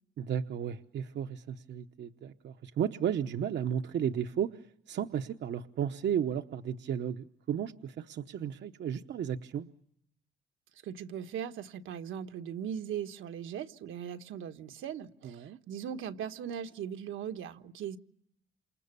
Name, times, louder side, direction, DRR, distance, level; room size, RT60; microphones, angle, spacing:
voice 1, 0.2-9.7 15.2-15.6, right 9 dB, 65° right, 1.0 m, -34 dB
voice 2, 10.8-18.0, right 9 dB, 80° right, 1.4 m, -39 dB
28.0 x 27.5 x 6.9 m
cardioid pair, 90°, 20 cm